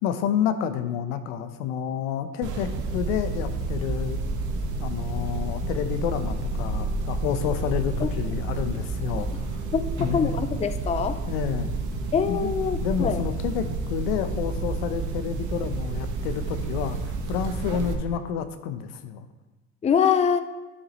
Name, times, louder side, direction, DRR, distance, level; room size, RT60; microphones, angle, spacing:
voice 1, 0.0-4.2 4.8-9.6 10.0-10.3 11.3-11.7 12.3-12.5 12.8-19.3, left 8 dB, 80° left, 9 dB, 0.9 m, -29 dB
sound 1, 2.4-17.9, right 3 dB, 55° right, 1.4 m, -30 dB
voice 2, 10.1-11.2 12.1-13.2 19.8-20.4, left 7 dB, 20° left, 11 dB, 0.5 m, -24 dB
11.0 x 8.8 x 3.1 m, 1.1 s
supercardioid pair, 80°, 36 cm